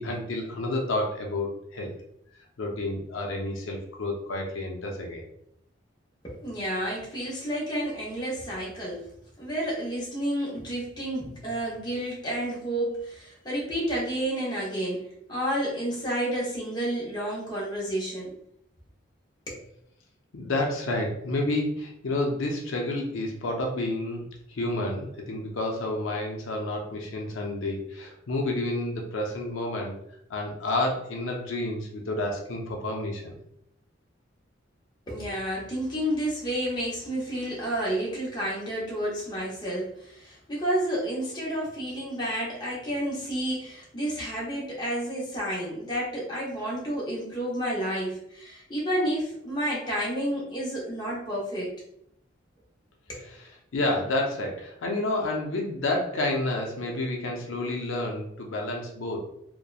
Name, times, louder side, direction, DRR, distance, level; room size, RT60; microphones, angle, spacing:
voice 1, 0.0-1.9 2.6-5.3 20.3-24.2 24.6-30.0 30.3-33.3 53.2-59.2, left 2 dB, 80° left, 1 dB, 0.5 m, -30 dB
voice 2, 6.2-9.1 9.4-18.3 19.5-19.6 35.1-51.7 53.1-53.2, right 1 dB, 20° left, -6 dB, 0.7 m, -30 dB
2.8 x 2.1 x 2.3 m, 0.73 s
head